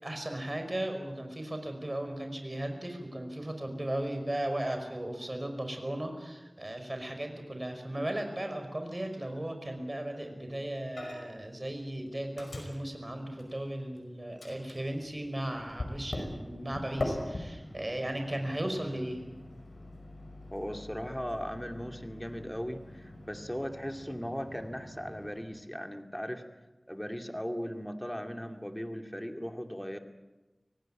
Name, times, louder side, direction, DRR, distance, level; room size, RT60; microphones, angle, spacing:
voice 1, 0.0-19.2, right 1 dB, 35° right, 5 dB, 5.3 m, -36 dB
Microwave oven, 11.0-11.5 11.7-14.0 14.4-25.4, left 1 dB, 80° left, 5.4 m, -43 dB
voice 2, 20.5-26.4 26.9-30.0, equal, 10° left, 5 dB, 2.3 m, -38 dB
25.5 x 18.0 x 8.9 m, 1.1 s
wide cardioid pair, 55°, 0 cm